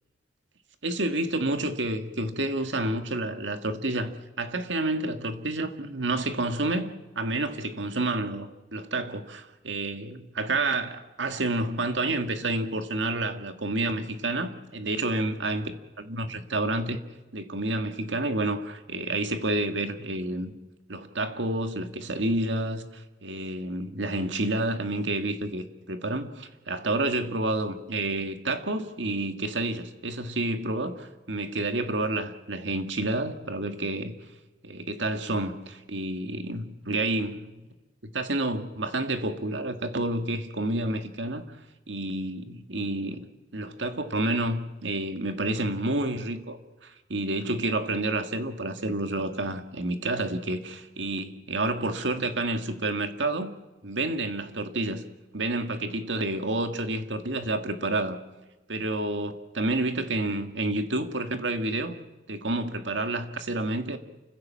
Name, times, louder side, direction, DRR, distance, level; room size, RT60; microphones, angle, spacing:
voice 1, 0.8-17.0 17.3-20.5 20.9-34.2 34.6-37.7 38.1-41.4 41.9-43.3 43.5-53.5 53.8-55.1 55.3-58.2 58.7-62.0 62.3-64.0, right 2 dB, 80° right, 2.0 m, -29 dB
29.0 x 16.0 x 7.6 m
head